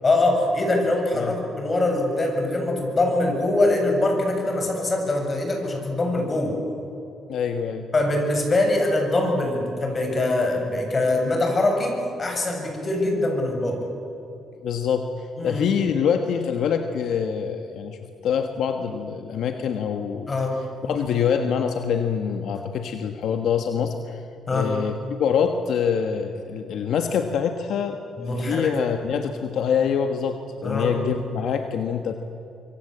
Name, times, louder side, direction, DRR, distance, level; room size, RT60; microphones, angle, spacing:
voice 1, 0.0-6.6 7.9-13.8 15.4-15.7 20.3-20.6 24.5-24.7 28.2-28.7 30.6-30.9, left 2 dB, 35° left, 3 dB, 7.5 m, -23 dB
voice 2, 7.3-7.9 14.6-18.0 18.2-20.3 20.9-24.2 24.5-28.0 28.4-32.1, left 7 dB, 75° left, 6 dB, 1.5 m, -25 dB
25.5 x 24.0 x 8.1 m, 2.9 s
cardioid pair, 90°, 0 cm